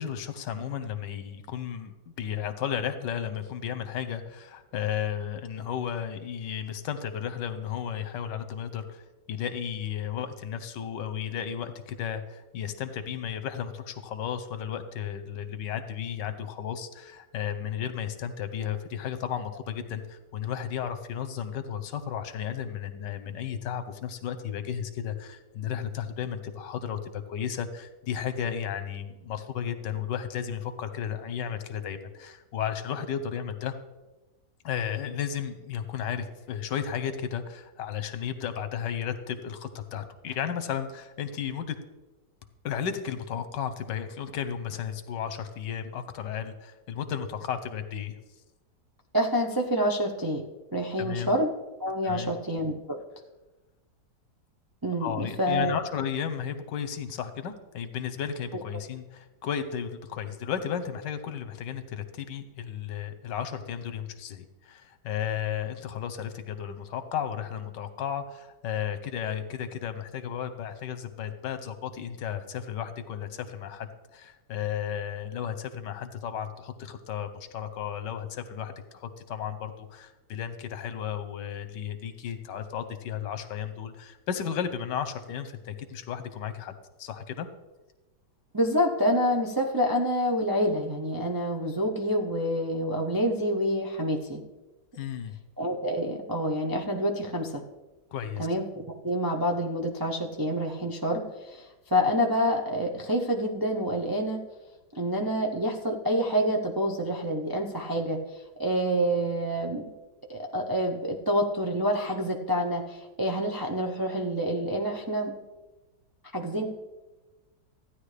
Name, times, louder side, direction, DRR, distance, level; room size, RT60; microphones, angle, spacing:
voice 1, 0.0-9.0 9.3-33.7 34.6-41.8 42.6-48.1 51.0-51.3 52.0-52.3 55.0-87.5 95.0-95.4 98.1-98.5, left 8 dB, 85° left, 10 dB, 1.5 m, -34 dB
voice 2, 49.1-50.4 50.7-51.5 51.8-53.0 54.8-55.8 88.5-94.4 95.6-97.6 98.4-104.4 104.9-108.2 108.6-109.9 110.3-115.3 116.3-116.7, equal, 30° right, 0 dB, 0.3 m, -27 dB
14.5 x 10.0 x 3.3 m, 1.1 s
omnidirectional pair, 1.9 m